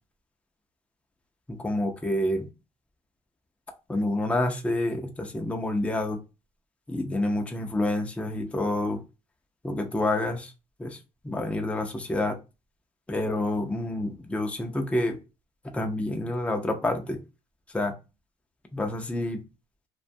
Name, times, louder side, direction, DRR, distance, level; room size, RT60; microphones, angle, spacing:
voice 1, 1.5-2.5 3.9-6.2 6.9-9.0 9.6-10.5 10.8-11.0 11.2-12.4 13.1-15.2 15.7-17.2 17.7-17.9 18.7-19.4, left 1 dB, 10° left, 5 dB, 0.5 m, -28 dB
2.4 x 2.2 x 2.5 m, 0.28 s
cardioid pair, 90°, 14 cm